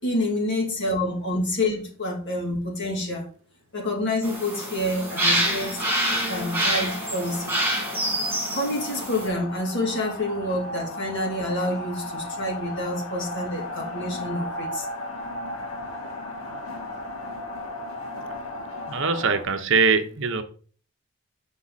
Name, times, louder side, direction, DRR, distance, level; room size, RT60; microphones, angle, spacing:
voice 1, 0.0-3.3 3.7-5.8 6.3-7.5 8.5-14.9, left 1 dB, 50° left, 2.8 m, -28 dB
sound 1, 4.2-9.3, right 1 dB, 10° right, 3.3 m, -26 dB
sound 2, 4.8-19.4, left 1 dB, 70° left, 1.9 m, -36 dB
voice 2, 18.9-20.4, right 4 dB, 55° right, 0.8 m, -22 dB
8.4 x 5.5 x 4.1 m
head